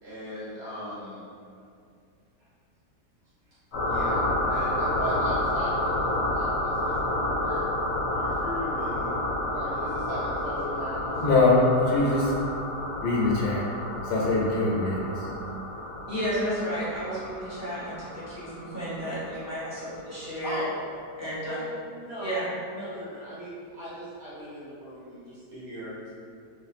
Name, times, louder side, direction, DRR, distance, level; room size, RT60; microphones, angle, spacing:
voice 1, 0.0-1.2 3.9-7.0 7.2-7.6 8.1-9.1 9.5-11.5 20.4-20.7 21.5-26.1, equal, 65° right, -11 dB, 1.6 m, -38 dB
sound 1, 3.7-20.0, left 1 dB, 50° left, 0.9 m, -30 dB
voice 2, 11.2-12.3 13.0-13.6 14.0-15.0, left 3 dB, 80° left, -3 dB, 1.2 m, -22 dB
voice 3, 16.1-20.6 21.2-21.6 22.2-22.5, equal, 10° right, -13 dB, 0.9 m, -32 dB
3.0 x 2.5 x 2.4 m, 2.3 s
omnidirectional pair, 1.8 m